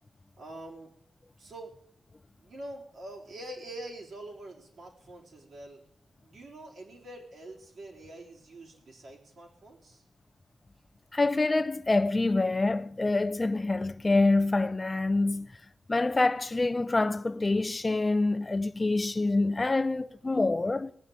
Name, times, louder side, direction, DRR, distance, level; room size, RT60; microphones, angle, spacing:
voice 1, 0.4-0.9 1.4-1.7 2.3-5.8 6.2-10.0, right 1 dB, 75° right, 3.9 m, -45 dB
voice 2, 11.1-15.5 15.9-20.9, left 2 dB, 25° left, 0.5 m, -26 dB
18.0 x 8.1 x 8.9 m
wide cardioid pair, 120°, 0 cm